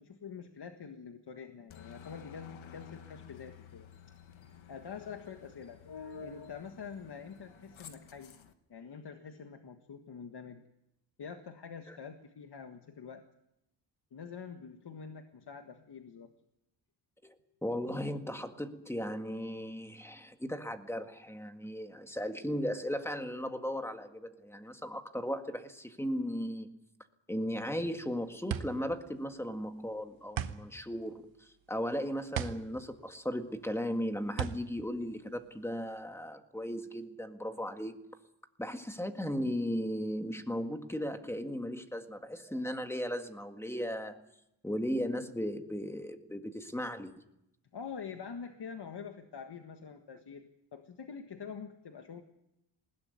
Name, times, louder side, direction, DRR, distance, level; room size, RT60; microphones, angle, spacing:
voice 1, 0.0-3.9 4.7-8.3 8.7-10.6 11.2-13.2 14.1-16.3 47.7-52.2, left 6 dB, 60° left, 6 dB, 1.6 m, -46 dB
Aircraft, 1.7-8.5, left 9 dB, 90° left, 1.5 m, -53 dB
voice 2, 17.6-26.8 27.3-38.2 38.6-44.3 44.6-47.1, equal, 5° left, 7 dB, 1.8 m, -36 dB
sound 1, 27.7-36.0, right 9 dB, 85° right, 1.3 m, -40 dB
20.5 x 16.5 x 9.6 m, 0.85 s
wide cardioid pair, 100°, 45 cm